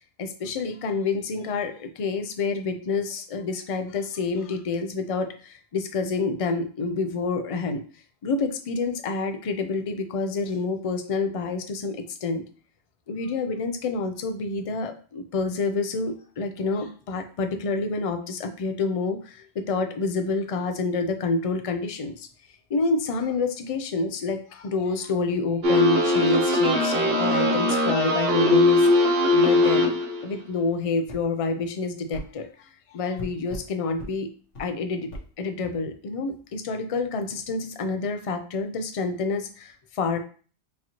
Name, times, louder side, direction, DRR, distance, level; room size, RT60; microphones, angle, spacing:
voice 1, 0.2-7.8 8.2-12.4 13.1-22.3 22.7-28.9 29.3-30.0 30.2-32.7 32.9-34.3 34.6-35.1 35.4-40.2, left 3 dB, 60° left, 7 dB, 0.3 m, -28 dB
sound 1, 25.6-30.2, left 2 dB, 65° right, 0.9 m, -20 dB
sound 2, 31.1-31.2 32.1-32.3 33.2-33.7 34.0-34.1 34.5-34.7 35.1-35.3, left 1 dB, 85° left, 1.4 m, -37 dB
4.7 x 2.9 x 2.9 m, 0.40 s
omnidirectional pair, 1.2 m